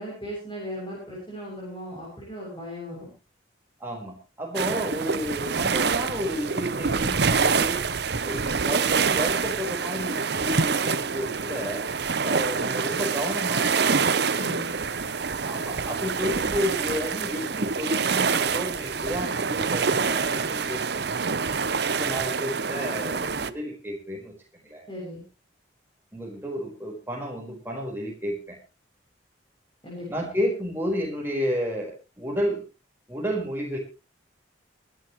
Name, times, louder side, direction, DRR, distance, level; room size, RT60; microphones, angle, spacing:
voice 1, 0.0-3.1 14.4-14.7 24.9-25.2 29.8-30.3, equal, 25° left, -3 dB, 7.1 m, -37 dB
voice 2, 3.8-7.8 8.2-11.8 12.2-14.0 15.4-21.4 22.0-24.3 24.6-24.8 26.1-28.6 30.1-32.6 33.1-33.8, equal, 10° right, -1 dB, 4.6 m, -31 dB
sound 1, 4.5-23.5, right 5 dB, 55° right, 0.8 m, -26 dB
24.0 x 11.5 x 3.1 m, 0.30 s
head